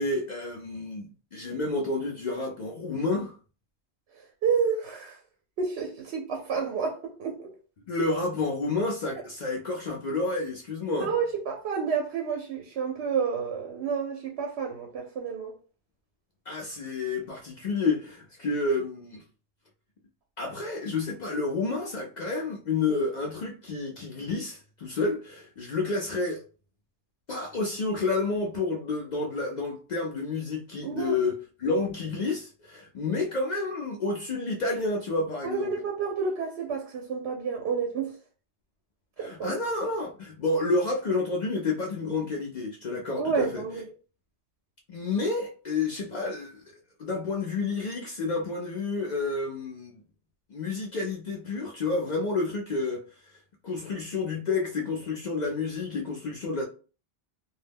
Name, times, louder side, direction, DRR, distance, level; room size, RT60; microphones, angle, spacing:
voice 1, 0.0-3.4 7.9-11.1 16.5-19.2 20.4-26.4 27.3-35.7 39.2-43.6 44.9-46.6 47.0-49.9 50.5-53.4 53.6-56.6, left 3 dB, 55° left, 0.5 m, -30 dB
voice 2, 4.4-5.2 5.6-7.5 11.0-15.5 30.8-31.2 35.4-38.2 39.2-39.5 43.2-43.8, right 6 dB, 85° right, 0.8 m, -30 dB
2.2 x 2.1 x 3.3 m
omnidirectional pair, 1.1 m